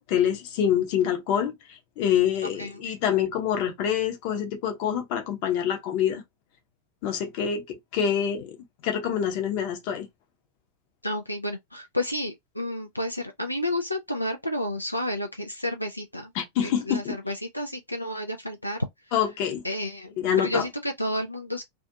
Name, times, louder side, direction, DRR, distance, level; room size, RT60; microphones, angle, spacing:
voice 1, 0.0-6.2 7.0-8.6 8.8-10.1 16.3-17.1 19.1-19.6 20.2-20.7, left 9 dB, 45° left, 0.8 m, -26 dB
voice 2, 11.0-16.3 16.6-18.8 19.6-21.6, left 1 dB, 85° left, 0.4 m, -31 dB
2.5 x 2.3 x 2.6 m
figure-of-eight pair, 90°, 0 cm